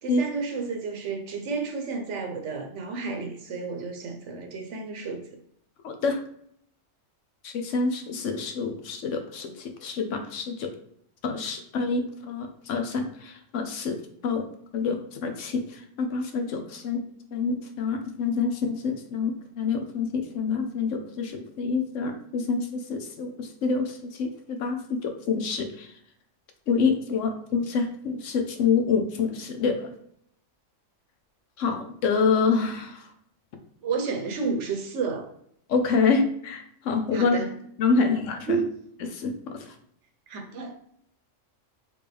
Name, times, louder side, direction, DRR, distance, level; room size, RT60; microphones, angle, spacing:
voice 1, 0.0-5.3 33.8-35.3 37.1-37.5 37.9-38.2 38.5-38.7 40.3-40.8, right 5 dB, 70° right, 1.1 m, -31 dB
voice 2, 5.8-6.2 7.4-10.7 11.2-14.0 14.2-14.5 14.7-17.0 17.3-25.9 26.7-29.9 31.6-33.0 35.7-37.4 37.8-38.6 39.1-39.6, left 4 dB, 80° left, 1.1 m, -27 dB
4.3 x 3.5 x 3.4 m
omnidirectional pair, 1.3 m